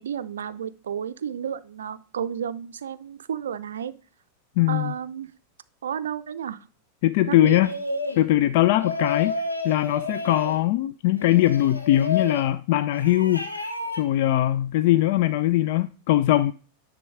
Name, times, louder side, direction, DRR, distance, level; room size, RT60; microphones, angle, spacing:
voice 1, 0.0-3.9 4.7-5.3 5.8-6.6 7.3-7.7, right 8 dB, 65° right, 0.4 m, -32 dB
voice 2, 4.6-4.9 7.0-7.7 8.2-9.4 9.6-13.7 14.0-16.5, left 14 dB, 50° left, 0.3 m, -21 dB
sound 1, 7.6-8.2 8.8-10.6 11.2-12.5 12.9-14.0, left 3 dB, 80° left, 1.1 m, -30 dB
9.8 x 3.5 x 4.9 m
figure-of-eight pair, 90°, 0 cm